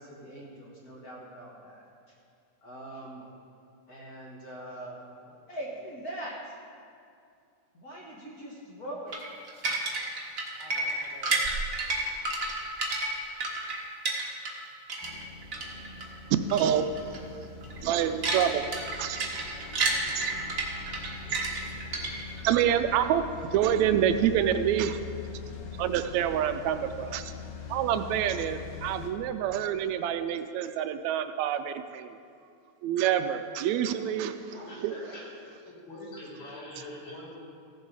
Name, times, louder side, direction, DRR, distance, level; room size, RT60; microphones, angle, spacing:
voice 1, 0.0-2.1 2.6-3.3 3.9-5.0 5.2-6.5 7.7-9.2 9.5-9.9 10.5-11.4, right 1 dB, 45° left, -3 dB, 1.2 m, -42 dB
sound 1, 9.1-14.6 14.9-16.0 16.5-16.7 16.9-17.2 17.6-22.4, right 3 dB, 45° right, 1.1 m, -31 dB
sound 2, 15.0-29.1, left 5 dB, 90° left, 2.5 m, -42 dB
voice 2, 16.5-16.9 17.8-18.6 19.0-19.6 20.2-20.3 21.3-21.5 22.4-23.3 23.5-25.0 25.8-27.3 27.7-32.2 32.8-34.3 34.8-35.0, right 10 dB, 80° right, 9 dB, 1.7 m, -27 dB
voice 3, 34.0-35.2 35.6-37.4, left 1 dB, 75° left, -6 dB, 4.3 m, -43 dB
15.5 x 7.5 x 4.7 m, 2.4 s
omnidirectional pair, 3.5 m